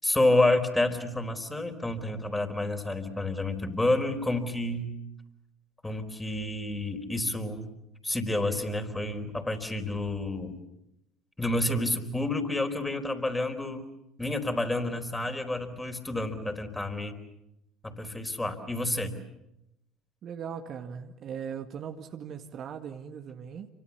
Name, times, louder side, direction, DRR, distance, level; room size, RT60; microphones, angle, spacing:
voice 1, 0.0-5.0 5.8-7.7 8.0-10.6 11.4-13.8 14.2-17.1 17.8-19.1, left 2 dB, 15° left, 6 dB, 4.4 m, -29 dB
voice 2, 20.2-23.7, right 7 dB, 50° right, 6 dB, 1.9 m, -39 dB
29.0 x 25.0 x 7.2 m, 0.86 s
figure-of-eight pair, 60°, 0 cm